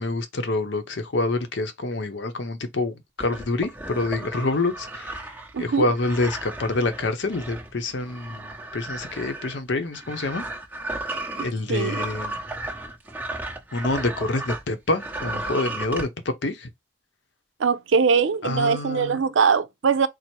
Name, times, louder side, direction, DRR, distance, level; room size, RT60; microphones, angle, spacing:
voice 1, 0.0-5.2 5.6-10.4 11.4-12.4 13.7-16.7 18.4-19.2, left 2 dB, 60° left, 0.7 m, -27 dB
sound 1, 3.2-14.7 14.9-16.1, right 2 dB, 10° right, 1.0 m, -34 dB
voice 2, 5.5-5.9 11.4-12.0 17.6-20.1, right 5 dB, 75° right, 0.5 m, -22 dB
4.3 x 2.0 x 4.5 m
head